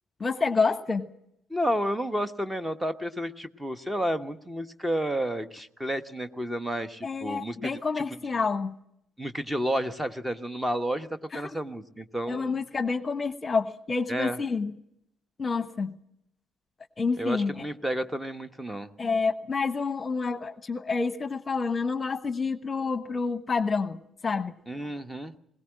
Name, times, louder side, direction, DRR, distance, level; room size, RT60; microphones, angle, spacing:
voice 1, 0.2-1.1 7.0-8.8 11.3-11.4 12.3-14.7 15.4-16.0 17.0-17.6 19.0-24.5, left 4 dB, 30° left, 14 dB, 1.1 m, -28 dB
voice 2, 1.5-7.7 9.2-11.1 11.3-12.6 14.1-14.4 17.2-18.9 24.7-25.3, equal, 10° right, 12 dB, 1.3 m, -31 dB
21.5 x 19.5 x 7.5 m, 0.78 s
figure-of-eight pair, 50°, 0 cm